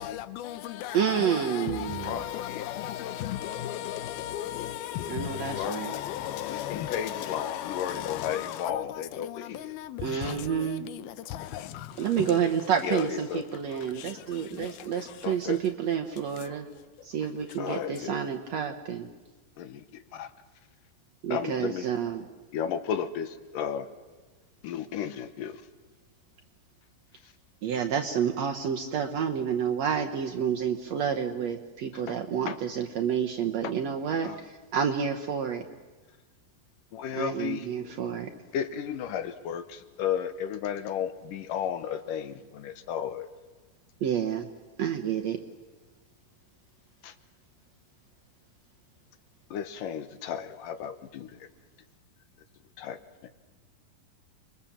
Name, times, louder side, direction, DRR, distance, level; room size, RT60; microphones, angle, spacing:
voice 1, 0.0-12.4 13.5-15.5 16.4-16.6 17.2-17.6, left 12 dB, 85° left, 2.8 m, -37 dB
voice 2, 0.9-2.2 5.1-5.9 10.0-10.8 12.0-16.7 17.0-19.1 21.2-22.3 27.6-35.7 37.1-38.3 44.0-44.5 44.8-45.4, right 8 dB, 65° right, 1.8 m, -29 dB
voice 3, 2.0-2.7 5.3-6.0 6.5-9.7 10.1-10.4 12.4-12.5 12.8-13.4 15.2-15.6 17.6-18.2 19.6-20.3 21.3-21.9 22.5-23.9 24.6-25.6 31.9-32.1 32.5-32.6 34.2-34.4 36.9-38.3 38.5-43.3 47.0-47.1 49.5-51.5 52.8-53.0, left 9 dB, 70° left, 2.6 m, -34 dB
29.5 x 22.5 x 7.4 m
omnidirectional pair, 4.2 m